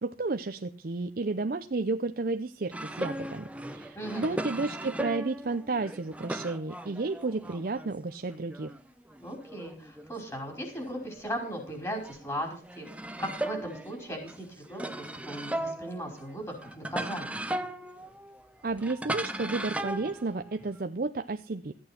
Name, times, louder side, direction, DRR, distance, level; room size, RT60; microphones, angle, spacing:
voice 1, 0.0-8.7 18.6-21.7, right 3 dB, 55° right, 8 dB, 0.6 m, -32 dB
sound 1, 2.7-8.0 8.3-11.6 12.0-20.8, right 1 dB, 10° right, 0.8 m, -38 dB
voice 2, 3.9-4.4 9.2-12.9 13.2-17.4, equal, 20° left, 2 dB, 4.9 m, -37 dB
14.0 x 8.9 x 5.9 m, 0.39 s
head